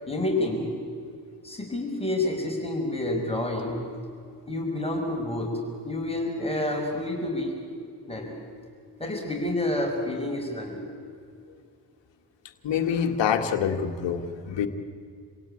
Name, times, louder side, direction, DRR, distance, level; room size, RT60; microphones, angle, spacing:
voice 1, 0.1-0.7 1.4-3.8 4.5-5.6 5.9-7.6 8.1-8.3 9.0-10.8, left 1 dB, 15° left, 0 dB, 5.7 m, -28 dB
voice 2, 12.6-14.7, left 8 dB, 80° left, 6 dB, 1.8 m, -26 dB
27.5 x 17.5 x 8.7 m, 2.3 s
supercardioid pair, 50°, 43 cm